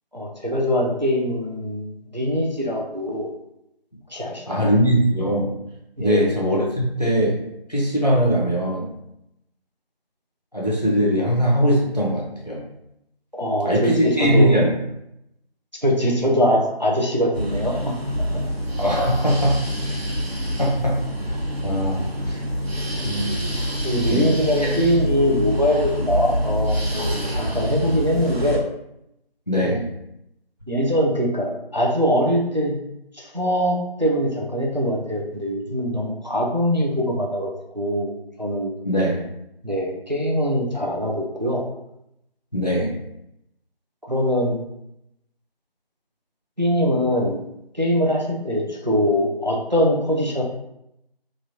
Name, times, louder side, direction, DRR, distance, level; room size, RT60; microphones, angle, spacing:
voice 1, 0.1-3.3 4.1-4.7 6.0-6.3 13.3-14.6 15.8-17.9 23.8-28.6 29.6-29.8 30.7-32.8 33.1-38.1 38.4-38.7 39.6-41.6 44.1-44.6 46.6-47.4 47.7-50.4, equal, 45° right, -1 dB, 0.4 m, -22 dB
voice 2, 4.5-5.5 6.0-7.4 7.7-8.9 10.5-12.6 13.6-14.7 18.8-20.0 20.6-21.3 21.6-22.0 22.3-22.4 23.0-23.3 24.1-24.3 24.6-24.8 29.5-29.9 38.8-39.2 42.5-42.9, equal, 40° left, -4 dB, 0.6 m, -21 dB
sound 1, 17.3-28.6, equal, 75° right, 0.9 m, -26 dB
3.0 x 2.3 x 2.7 m, 0.82 s
figure-of-eight pair, 180°, 31 cm